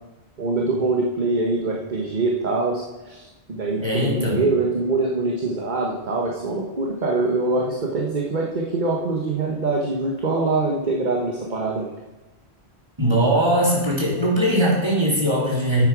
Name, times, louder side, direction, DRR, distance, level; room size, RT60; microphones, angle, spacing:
voice 1, 0.4-11.9, right 3 dB, 45° right, -1 dB, 1.5 m, -24 dB
voice 2, 3.8-4.4 13.0-15.9, equal, 25° right, -4 dB, 3.7 m, -20 dB
9.9 x 8.9 x 6.1 m, 1.1 s
omnidirectional pair, 1.1 m